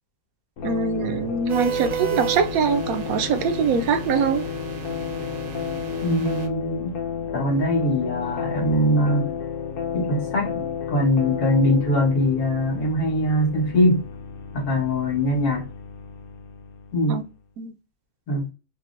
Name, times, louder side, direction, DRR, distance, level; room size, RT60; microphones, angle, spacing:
sound 1, 0.6-17.3, left 7 dB, 65° left, 0.5 m, -32 dB
voice 1, 0.6-4.4 17.1-17.2 17.6-17.7, right 6 dB, 75° right, 1.0 m, -23 dB
sound 2, 1.5-6.5, right 8 dB, 50° right, 0.7 m, -33 dB
voice 2, 6.0-7.0 7.3-9.3 9.9-14.0 14.5-15.7 16.9-17.2 18.3-18.5, left 1 dB, 80° left, 2.0 m, -22 dB
5.2 x 2.1 x 2.5 m
omnidirectional pair, 1.5 m